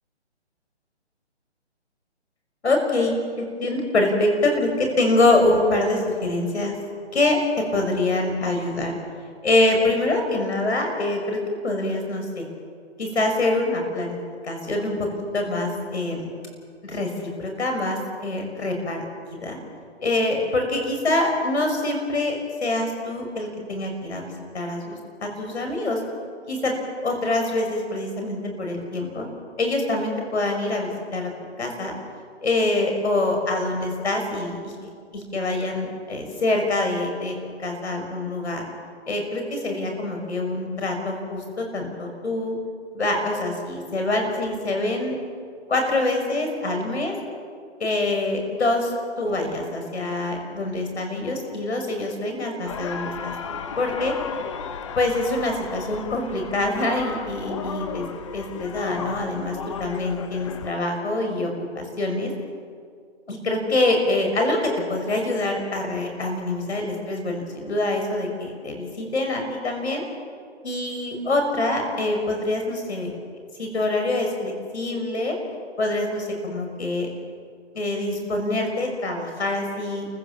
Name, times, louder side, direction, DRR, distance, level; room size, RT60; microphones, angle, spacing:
voice 1, 2.6-6.7 7.1-8.9 9.4-12.4 13.0-14.2 14.4-15.1 15.3-16.3 16.8-19.6 20.0-26.0 26.5-26.7 27.0-29.3 29.6-31.3 31.6-31.9 32.4-34.7 35.1-38.7 39.1-42.6 42.9-45.2 45.7-47.1 47.8-48.9 49.2-54.1 55.0-58.1 58.3-62.3 63.3-70.0 70.6-73.1 73.6-75.4 75.8-77.1 77.7-80.1, left 2 dB, 70° left, 3 dB, 6.3 m, -25 dB
sound 1, 52.7-60.7, left 6 dB, 25° left, 0.9 m, -34 dB
29.5 x 15.0 x 7.4 m, 2.2 s
hypercardioid pair, 150°, 34 cm